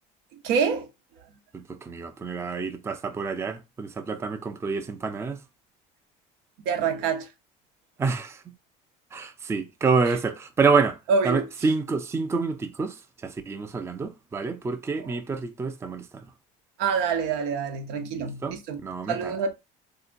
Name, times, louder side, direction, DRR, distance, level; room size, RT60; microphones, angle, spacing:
voice 1, 0.4-0.9 6.6-7.3 11.1-11.5 15.0-15.2 16.8-18.8 19.1-19.5, right 5 dB, 85° right, 0.8 m, -26 dB
voice 2, 1.5-5.4 8.0-8.4 9.1-11.0 11.2-13.0 13.2-16.1 18.2-18.5 18.8-19.3, right 4 dB, 15° right, 0.4 m, -27 dB
3.6 x 2.7 x 2.4 m
cardioid pair, 115°, 17 cm